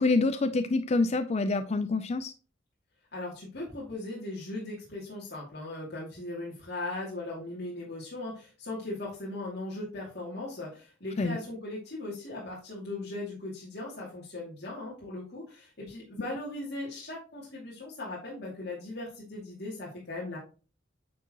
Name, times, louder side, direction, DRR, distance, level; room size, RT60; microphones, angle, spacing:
voice 1, 0.0-2.3 11.2-11.4, left 3 dB, 35° left, 0.4 m, -26 dB
voice 2, 3.1-20.4, left 2 dB, 60° left, 2.4 m, -38 dB
9.1 x 4.6 x 2.9 m
head